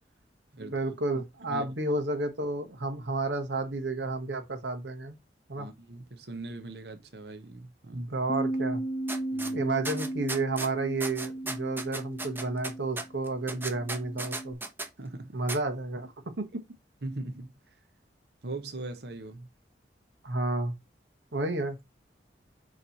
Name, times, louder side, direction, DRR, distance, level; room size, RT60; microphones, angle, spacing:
voice 1, 0.6-5.2 5.5-5.7 7.9-8.8 9.5-14.6 15.3-16.1 16.4-16.5 20.2-20.7 21.3-21.8, right 2 dB, 90° right, 1.3 m, -31 dB
voice 2, 5.5-8.1 9.3-9.7 15.0-15.4 17.0-17.8 18.4-19.5, right 2 dB, 65° right, 1.0 m, -40 dB
Bass guitar, 8.3-14.5, right 1 dB, 25° left, 0.5 m, -35 dB
sound 1, 9.1-9.5 9.8-10.7 11.0-14.9 15.5-15.6, right 2 dB, 10° right, 0.8 m, -36 dB
7.3 x 3.3 x 4.1 m
head